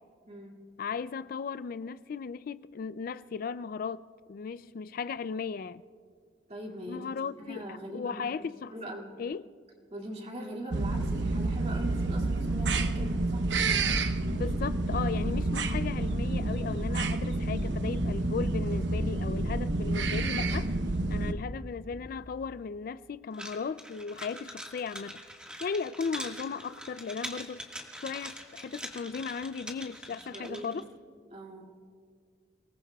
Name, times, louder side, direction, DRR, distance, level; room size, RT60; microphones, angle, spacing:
voice 1, 0.8-4.0 4.3-5.8 6.9-8.8 9.2-9.5 14.3-20.7 21.1-25.2 25.6-27.7 28.0-30.8, left 5 dB, 55° left, 0.4 m, -36 dB
voice 2, 6.5-8.3 8.7-9.1 9.9-13.4 30.1-30.7 31.3-31.7, right 1 dB, 40° right, 2.3 m, -42 dB
sound 1, 10.7-21.3, right 2 dB, 80° right, 0.9 m, -29 dB
sound 2, 23.3-30.8, equal, 5° right, 1.6 m, -43 dB
29.5 x 19.0 x 2.3 m
head